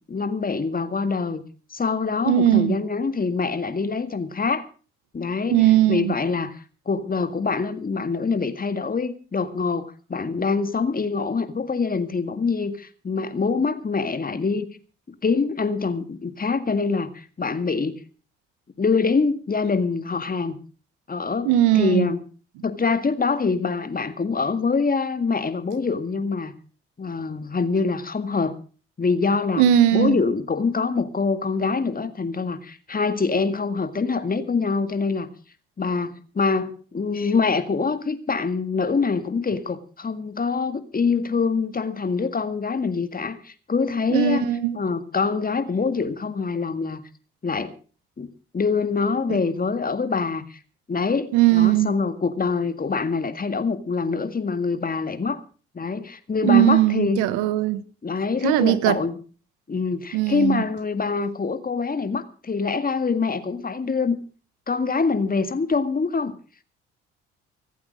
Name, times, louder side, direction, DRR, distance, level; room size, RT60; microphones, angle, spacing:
voice 1, 0.1-1.4 1.7-4.7 5.1-6.6 6.9-14.7 15.2-18.0 18.8-20.6 21.1-21.5 21.7-22.2 22.6-26.5 27.0-28.5 29.0-29.7 29.9-35.3 35.8-44.5 44.7-47.0 47.4-47.7 48.2-48.3 48.5-50.6 50.9-55.4 55.7-57.2 58.0-59.2 59.7-64.2 64.7-66.4, left 4 dB, 30° left, 2.0 m, -25 dB
voice 2, 2.2-2.8 5.5-6.1 21.4-22.1 29.6-30.2 44.1-44.8 49.3-49.4 51.3-51.9 56.4-57.8 58.4-59.0 60.1-60.6, right 12 dB, 70° right, 1.1 m, -19 dB
25.5 x 8.5 x 5.1 m
hypercardioid pair, 55°, 31 cm